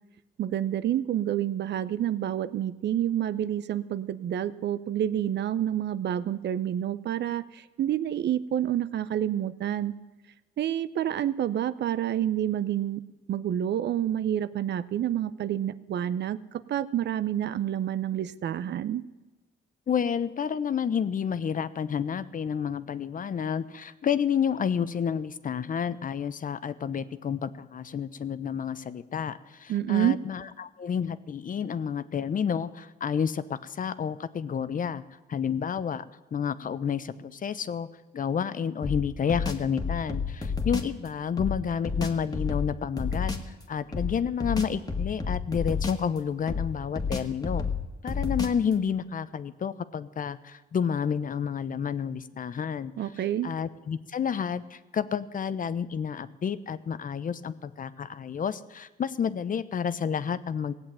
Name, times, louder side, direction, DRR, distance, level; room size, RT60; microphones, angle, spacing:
voice 1, 0.4-9.9 10.6-13.0 13.3-19.0 29.7-30.2 53.0-53.5, right 11 dB, 60° right, 16 dB, 0.7 m, -28 dB
voice 2, 19.9-35.0 35.3-36.0 36.3-37.9 38.1-47.7 48.0-60.7, left 7 dB, 45° left, 15 dB, 0.8 m, -30 dB
sound 1, 38.8-41.0 41.4-43.5 43.9-46.2 46.5-48.7, left 5 dB, 20° left, 1.7 m, -31 dB
17.0 x 8.0 x 8.9 m, 1.2 s
cardioid pair, 90°, 20 cm